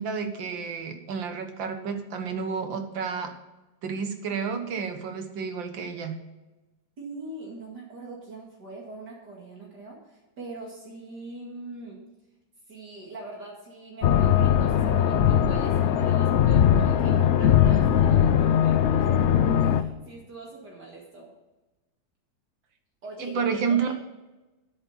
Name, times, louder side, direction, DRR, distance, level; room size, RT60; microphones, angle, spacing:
voice 1, 0.0-3.3 3.8-6.2 23.2-23.9, right 6 dB, 80° right, 6 dB, 2.0 m, -30 dB
voice 2, 7.0-12.0 12.7-19.3 19.5-21.3 23.0-23.9, right 2 dB, 60° right, -3 dB, 2.7 m, -42 dB
sound 1, 14.0-19.8, left 9 dB, 80° left, 0.6 m, -20 dB
10.0 x 8.3 x 5.6 m, 1.1 s
omnidirectional pair, 2.0 m